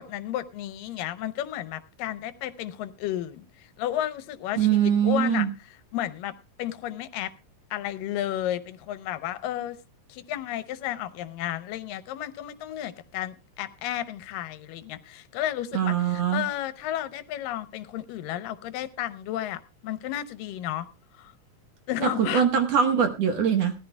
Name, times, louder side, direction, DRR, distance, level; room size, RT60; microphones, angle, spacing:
voice 1, 0.0-5.5 5.9-7.3 7.7-9.8 10.1-20.9 21.2-21.3 21.9-22.5, left 12 dB, 85° left, 13 dB, 2.4 m, -32 dB
voice 2, 4.6-5.5 15.7-16.4 22.0-23.7, right 8 dB, 60° right, 6 dB, 1.9 m, -22 dB
18.0 x 14.0 x 2.2 m, 0.29 s
omnidirectional pair, 3.9 m